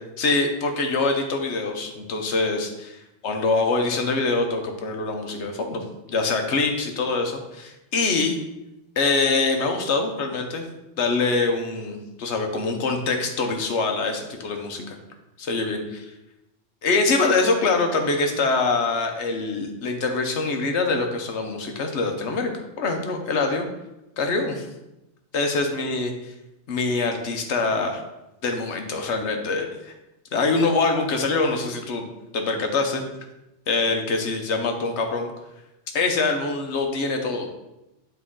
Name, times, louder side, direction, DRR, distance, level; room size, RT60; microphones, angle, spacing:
voice 1, 0.2-8.4 9.0-10.7 11.0-15.0 15.4-16.1 16.8-22.5 22.8-23.7 24.2-24.7 25.3-26.1 26.7-28.0 28.4-29.9 30.3-32.1 32.3-33.0 33.7-35.3 35.9-37.5, left 3 dB, 75° left, 4 dB, 1.1 m, -24 dB
8.4 x 3.1 x 3.7 m, 0.94 s
omnidirectional pair, 1.2 m